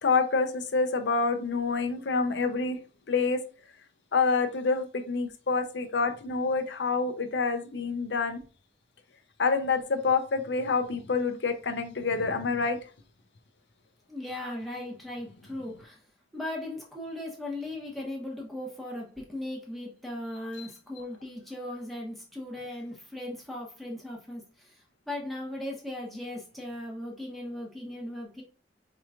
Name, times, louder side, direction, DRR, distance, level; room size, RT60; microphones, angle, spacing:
voice 1, 0.0-2.8 3.1-3.4 4.1-8.4 9.4-12.8 20.6-20.7, left 4 dB, 80° left, 0.7 m, -27 dB
voice 2, 14.1-16.0 16.3-28.4, left 1 dB, ahead, 1.0 m, -38 dB
4.7 x 3.0 x 2.4 m
head